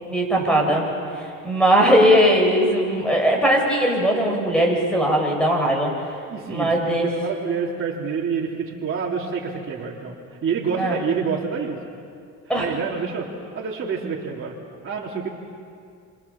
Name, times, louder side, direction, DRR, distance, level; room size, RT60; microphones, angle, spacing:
voice 1, 0.1-0.8 1.1-5.9 6.5-7.1 10.8-11.0 12.5-12.7, equal, 5° left, 0 dB, 7.9 m, -19 dB
voice 2, 6.3-6.9 7.2-11.8 12.6-13.3 13.5-14.6 14.8-15.3, right 6 dB, 40° right, -4 dB, 3.7 m, -27 dB
28.5 x 26.5 x 7.5 m, 2.3 s
cardioid pair, 105°, 31 cm